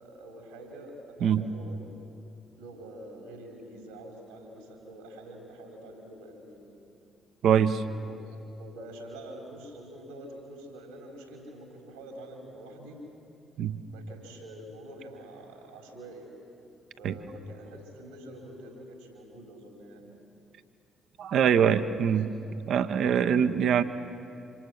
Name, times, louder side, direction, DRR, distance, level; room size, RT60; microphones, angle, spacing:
voice 1, 0.0-1.8 2.6-6.7 7.8-13.0 13.9-16.3 17.0-20.1 21.4-22.0, right 1 dB, 80° right, 1 dB, 3.9 m, -46 dB
voice 2, 7.4-7.8 13.6-13.8 17.0-17.2 21.2-22.3 22.7-23.8, right 8 dB, 55° right, 10 dB, 0.9 m, -23 dB
27.0 x 26.0 x 6.4 m, 2.7 s
figure-of-eight pair, 40°, 0 cm